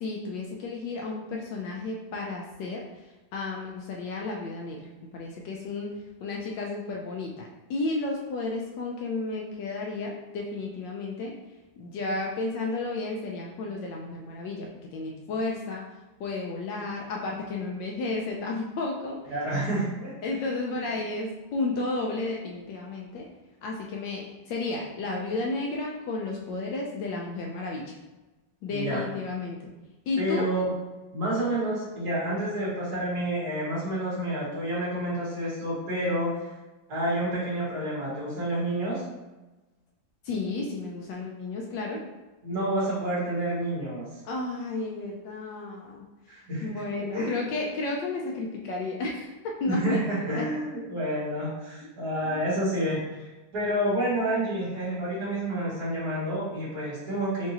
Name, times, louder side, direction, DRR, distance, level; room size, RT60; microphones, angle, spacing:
voice 1, 0.0-11.4 11.8-15.8 16.2-19.2 20.2-23.3 23.6-27.9 28.6-29.7 30.1-30.5 40.2-42.0 44.2-46.0 46.3-50.0 50.3-50.5 52.3-52.4, left 3 dB, 75° left, -1 dB, 1.1 m, -32 dB
voice 2, 19.3-20.1 28.7-29.0 30.2-30.7 31.1-36.3 36.9-39.0 42.4-44.1 46.3-46.7 47.1-47.4 49.7-57.5, right 1 dB, 55° right, -8 dB, 2.0 m, -29 dB
4.6 x 2.7 x 2.8 m, 1.1 s
omnidirectional pair, 2.2 m